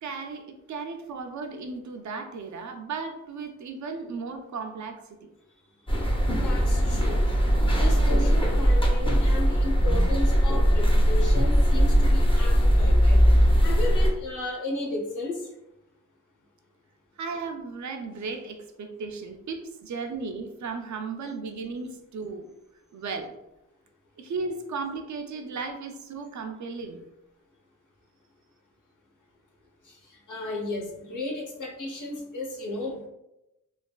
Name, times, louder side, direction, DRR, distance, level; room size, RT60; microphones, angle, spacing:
voice 1, 0.0-5.3 17.2-22.5 22.9-23.3 24.2-27.0, right 4 dB, 65° right, 5 dB, 0.5 m, -35 dB
sound 1, 5.9-14.1, equal, 15° left, 0.6 m, -20 dB
voice 2, 6.4-7.3 7.8-13.2 13.6-15.4 29.8-33.1, left 2 dB, 70° left, -2 dB, 0.9 m, -34 dB
3.2 x 2.3 x 2.2 m, 0.92 s
cardioid pair, 75°, 32 cm